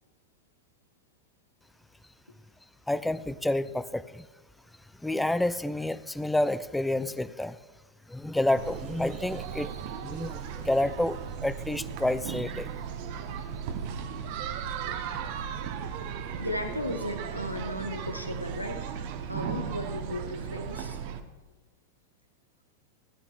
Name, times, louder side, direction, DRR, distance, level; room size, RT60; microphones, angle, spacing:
voice 1, 2.9-4.3 5.0-7.6 8.1-9.7 10.0-12.7, left 1 dB, 5° left, 16 dB, 0.4 m, -29 dB
sound 1, 8.5-21.2, right 7 dB, 50° right, 0.8 m, -36 dB
voice 2, 16.3-18.8 19.3-21.0, left 1 dB, 90° left, 5 dB, 1.1 m, -35 dB
15.5 x 11.0 x 2.4 m, 1.2 s
figure-of-eight pair, 90°, 0 cm